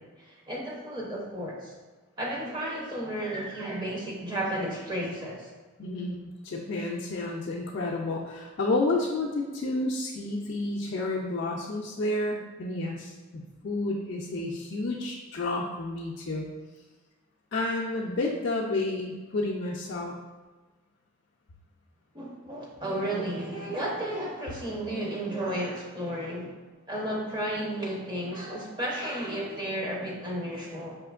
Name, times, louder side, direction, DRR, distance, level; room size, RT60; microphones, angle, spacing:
voice 1, 0.0-1.7 2.2-5.5 22.1-26.5 26.9-31.0, right 1 dB, 20° right, -4 dB, 0.6 m, -33 dB
voice 2, 5.8-13.1 13.6-16.5 17.5-20.1, left 2 dB, 50° left, -4 dB, 0.3 m, -30 dB
4.9 x 2.8 x 2.3 m, 1.3 s
head